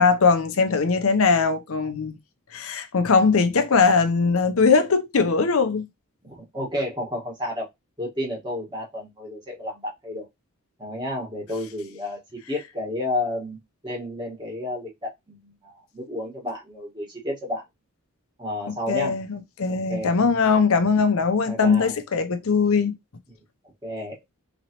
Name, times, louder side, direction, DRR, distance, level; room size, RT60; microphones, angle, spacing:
voice 1, 0.0-2.2 2.5-5.9 18.7-23.0, left 5 dB, 70° left, 0.6 m, -20 dB
voice 2, 6.2-7.7 8.0-10.3 10.8-17.6 18.4-19.2 19.7-20.1 21.5-22.0 23.8-24.2, left 1 dB, 20° right, 1.4 m, -31 dB
3.9 x 3.1 x 2.9 m
head